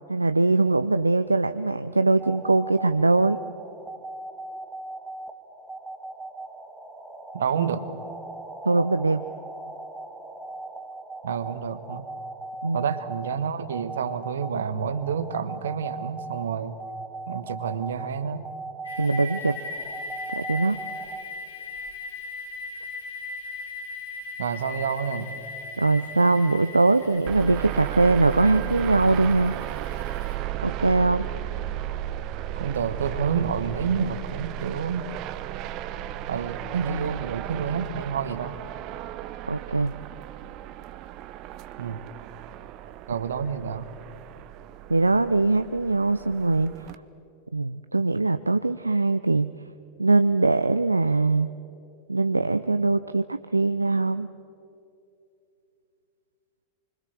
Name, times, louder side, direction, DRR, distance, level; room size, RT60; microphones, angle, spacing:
voice 1, 0.1-3.4 8.6-9.3 12.6-12.8 19.0-19.6 20.3-20.8 25.8-29.6 30.6-31.3 39.5-39.9 44.9-46.7 47.5-49.5 50.0-51.6 52.1-54.3, right 3 dB, 80° right, 11 dB, 0.5 m, -22 dB
sound 1, 2.2-21.2, right 2 dB, 5° right, 2.2 m, -39 dB
voice 2, 7.3-7.8 11.2-12.1 12.7-16.8 17.3-18.5 24.4-25.3 32.6-35.1 36.3-38.6 41.8-42.1 43.1-43.9, right 7 dB, 65° right, 13 dB, 1.3 m, -29 dB
sound 2, 18.8-30.4, left 3 dB, 75° left, 5.7 m, -39 dB
sound 3, 27.3-46.9, right 13 dB, 40° right, 0.8 m, -35 dB
25.5 x 24.5 x 7.4 m, 2.7 s
figure-of-eight pair, 90°, 0 cm